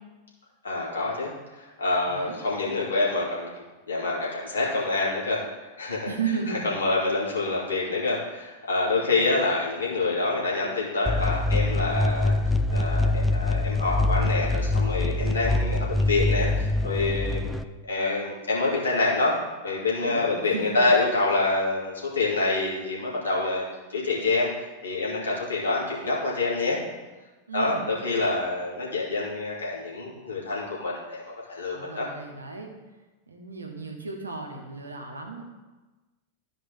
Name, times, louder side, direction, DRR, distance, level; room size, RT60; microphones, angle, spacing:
voice 1, 0.6-3.5 3.9-5.4 5.8-6.1 6.5-12.3 12.7-17.5 17.9-19.3 19.6-23.6 23.9-24.5 24.8-26.8 27.5-32.0, left 3 dB, 75° left, -5 dB, 2.5 m, -26 dB
voice 2, 2.1-2.4 6.0-6.7 9.0-9.3 20.0-20.6 27.5-27.8 31.7-32.7 33.3-35.4, right 5 dB, 80° right, 2 dB, 1.4 m, -34 dB
sound 1, 11.1-17.6, left 2 dB, ahead, 0.4 m, -24 dB
13.0 x 5.0 x 3.7 m, 1.2 s
figure-of-eight pair, 90°, 0 cm